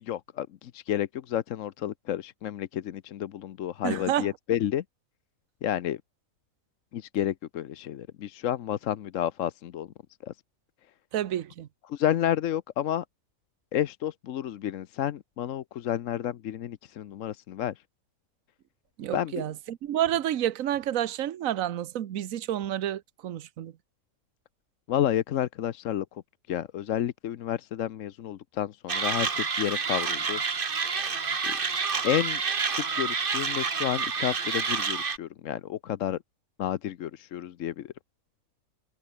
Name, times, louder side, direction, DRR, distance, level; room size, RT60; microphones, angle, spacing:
voice 1, 0.0-4.8 5.6-6.0 6.9-9.9 10.2-10.3 11.9-13.0 13.7-17.7 19.1-19.4 24.9-26.1 26.5-30.4 31.4-31.6 32.0-32.4 32.7-36.2 36.6-37.9, left 11 dB, 70° left, 1.1 m, -30 dB
voice 2, 3.8-4.3 11.1-11.7 19.0-23.7, right 11 dB, 75° right, 1.3 m, -29 dB
Mechanisms, 28.9-35.2, right 5 dB, 40° right, 1.5 m, -28 dB
omnidirectional pair, 1.4 m